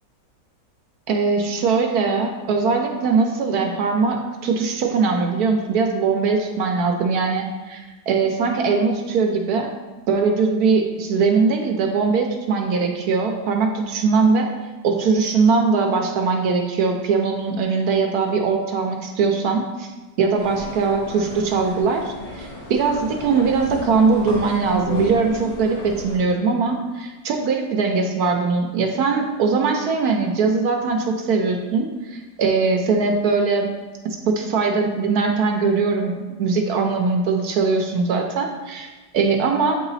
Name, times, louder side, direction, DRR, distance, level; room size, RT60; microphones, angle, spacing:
voice 1, 1.1-9.7 10.1-14.5 14.8-19.9 20.2-33.7 34.3-36.1 36.4-39.8, right 4 dB, 70° right, 3 dB, 1.1 m, -21 dB
sound 1, 20.4-26.2, left 2 dB, 80° left, 2.8 m, -34 dB
8.2 x 2.9 x 4.1 m, 1.2 s
omnidirectional pair, 1.8 m